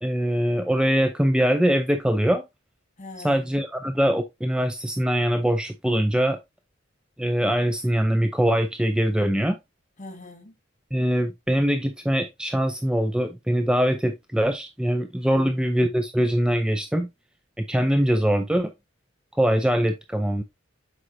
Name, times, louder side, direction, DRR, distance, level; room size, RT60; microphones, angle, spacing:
voice 1, 0.0-2.4 3.2-6.4 7.2-9.6 10.9-17.1 17.6-18.7 19.4-20.4, equal, 5° right, 0.4 m, -23 dB
voice 2, 3.0-3.6 10.0-10.5 15.3-15.7, left 2 dB, 35° left, 1.7 m, -42 dB
7.9 x 4.8 x 2.7 m
head